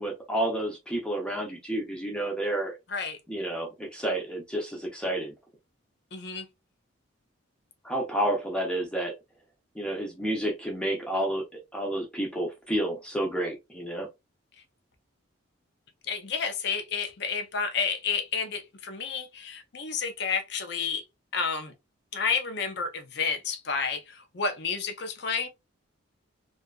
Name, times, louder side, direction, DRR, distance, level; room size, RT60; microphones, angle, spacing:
voice 1, 0.0-2.7 3.3-5.3 7.8-9.1 9.8-14.1, right 1 dB, 5° left, 0.6 m, -30 dB
voice 2, 6.1-6.5 16.1-21.0 21.3-21.7 22.1-25.5, left 5 dB, 55° left, 0.5 m, -30 dB
2.7 x 2.3 x 2.3 m
head